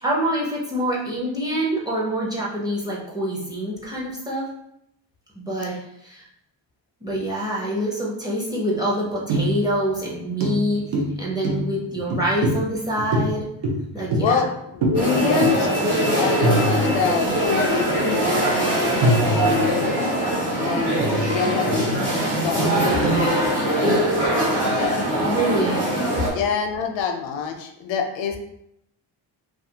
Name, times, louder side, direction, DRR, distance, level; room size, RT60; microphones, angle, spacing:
voice 1, 0.0-4.5 5.4-5.8 6.0-6.2 7.0-10.9 11.2-13.5 13.9-14.5 25.2-25.8, right 1 dB, 10° right, -4 dB, 0.5 m, -25 dB
sound 1, 9.3-9.8 10.1-10.2 10.4-14.5 14.8-15.1 15.4-15.7 16.0-16.1 16.4-17.3 18.0-18.1 19.0-19.9 20.4-23.3, right 1 dB, 70° right, 0.7 m, -25 dB
voice 2, 14.0-15.7 16.1-20.2 20.6-20.9 21.3-22.1 22.4-23.9 24.7-25.1 26.3-28.4, left 6 dB, 85° left, 4 dB, 0.5 m, -26 dB
sound 2, 14.9-26.3, right 1 dB, 40° right, 1.1 m, -22 dB
2.4 x 2.3 x 2.7 m, 0.78 s
cardioid pair, 135°, 45 cm